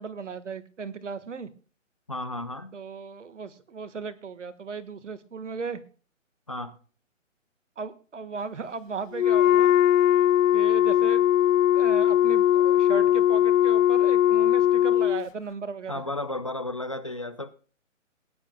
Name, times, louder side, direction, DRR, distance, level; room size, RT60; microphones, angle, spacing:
voice 1, 0.0-1.5 2.7-5.8 7.8-9.7 10.5-16.0, right 5 dB, 65° right, 12 dB, 1.6 m, -36 dB
voice 2, 2.1-2.7 6.5-6.8 15.9-17.5, left 2 dB, 25° left, 12 dB, 0.6 m, -33 dB
Wind instrument woodwind instrument, 9.1-15.3, left 11 dB, 85° left, 0.5 m, -20 dB
19.5 x 10.5 x 2.2 m, 0.39 s
hypercardioid pair, 170°, 39 cm